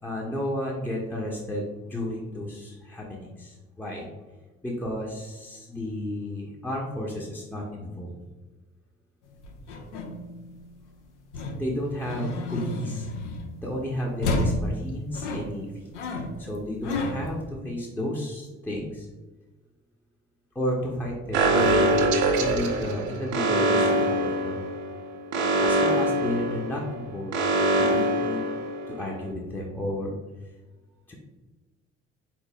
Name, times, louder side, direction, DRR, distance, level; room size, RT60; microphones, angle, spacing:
voice 1, 0.0-4.1 4.6-8.2 11.6-13.1 13.6-15.9 16.4-19.1 20.5-22.0 22.4-24.7 25.6-27.4 27.8-28.4 28.9-30.1 31.1-31.2, left 1 dB, 5° left, -2 dB, 0.7 m, -32 dB
sound 1, 9.3-10.8 11.3-13.8 14.2-17.4, left 2 dB, 80° left, 0.6 m, -31 dB
Alarm, 21.3-29.1, right 1 dB, 55° right, 0.8 m, -24 dB
4.0 x 3.0 x 3.3 m, 1.2 s
figure-of-eight pair, 45°, 35 cm